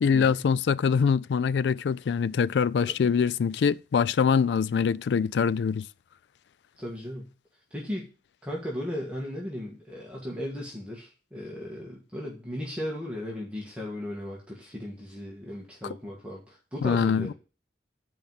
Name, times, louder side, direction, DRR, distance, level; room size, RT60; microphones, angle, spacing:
voice 1, 0.0-5.9 16.8-17.3, left 6 dB, 75° left, 0.3 m, -24 dB
voice 2, 6.8-7.3 7.7-8.1 8.4-17.3, left 1 dB, 5° right, 1.5 m, -36 dB
8.9 x 4.6 x 5.5 m
head